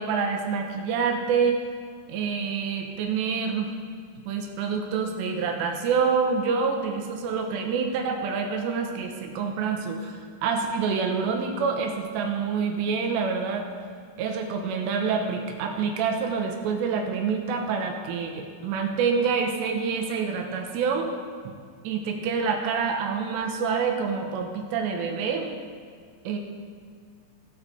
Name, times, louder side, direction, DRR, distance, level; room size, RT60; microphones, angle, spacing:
voice 1, 0.0-1.6 2.1-3.7 4.3-13.7 14.2-21.1 21.9-25.5 26.3-26.4, right 5 dB, 90° right, 3 dB, 3.3 m, -27 dB
22.5 x 8.5 x 3.5 m, 2.1 s
omnidirectional pair, 4.9 m